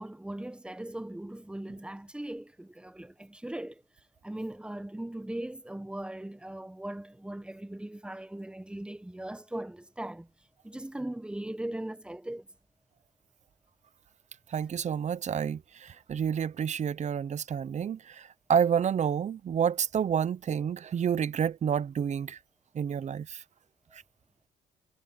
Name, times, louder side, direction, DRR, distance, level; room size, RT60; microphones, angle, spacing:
voice 1, 0.0-3.8 4.2-10.3 10.6-12.5 23.9-24.0, right 1 dB, 5° right, 1.0 m, -39 dB
voice 2, 14.5-22.4 22.7-23.4 23.9-24.0, right 8 dB, 45° right, 0.7 m, -29 dB
cardioid pair, 90°, 17 cm